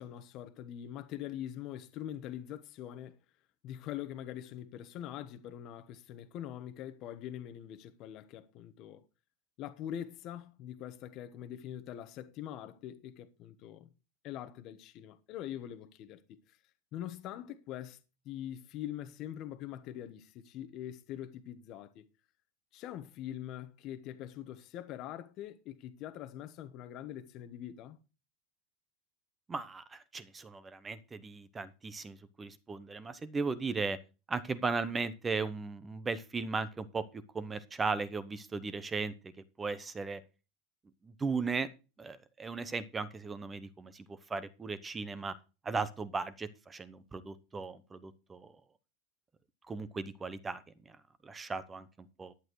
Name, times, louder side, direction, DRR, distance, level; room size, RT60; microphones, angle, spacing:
voice 1, 0.0-3.2 3.6-9.0 9.6-13.9 14.2-16.2 16.5-16.6 16.9-22.1 22.7-28.0, left 11 dB, 40° left, 1.1 m, -43 dB
voice 2, 29.5-34.0 34.3-37.0 37.3-39.3 39.6-40.2 41.0-41.7 42.0-45.3 45.6-48.5 49.7-50.6 50.9-51.0 51.2-52.3, right 4 dB, 15° right, 0.8 m, -37 dB
11.5 x 8.8 x 4.7 m
supercardioid pair, 160°, 0 cm